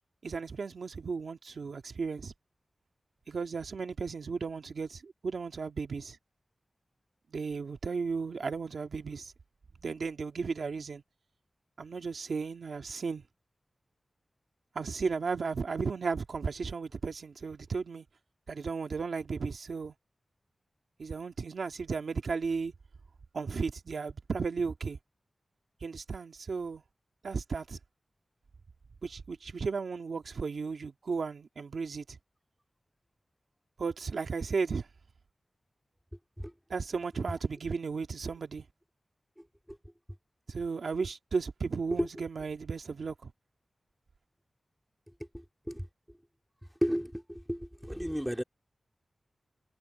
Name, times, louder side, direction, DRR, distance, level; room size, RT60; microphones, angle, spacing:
voice 1, 0.2-2.3 3.3-6.2 7.3-9.3 9.8-11.0 11.8-13.2 14.8-18.1 18.5-19.9 21.0-22.7 23.3-25.0 25.8-26.8 27.2-27.8 29.0-32.2 33.8-34.9 36.7-38.6 40.5-43.3, right 5 dB, 85° right, 1.8 m, -34 dB
voice 2, 45.3-45.9 46.8-48.4, equal, 5° right, 2.3 m, -33 dB
wide cardioid pair, 70°, 0 cm